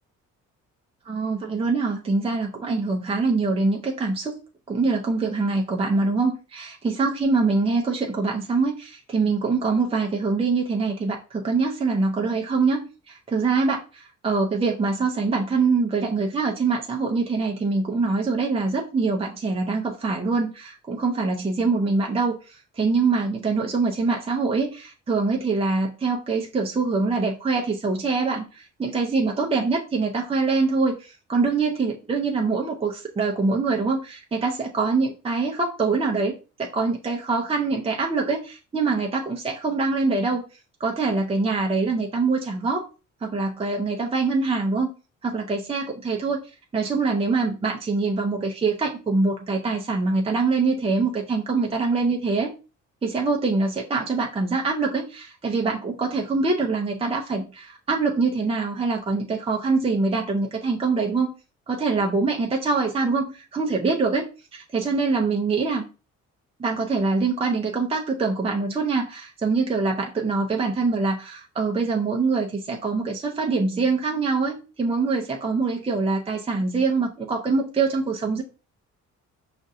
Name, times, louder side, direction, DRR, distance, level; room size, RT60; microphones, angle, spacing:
voice 1, 1.1-4.4 4.7-40.4 40.8-42.9 43.2-44.9 45.2-46.4 46.7-52.5 53.0-61.3 61.7-65.9 66.6-78.4, right 4 dB, 20° right, 0 dB, 0.6 m, -24 dB
5.1 x 2.5 x 2.7 m, 0.33 s
cardioid pair, 90°, 30 cm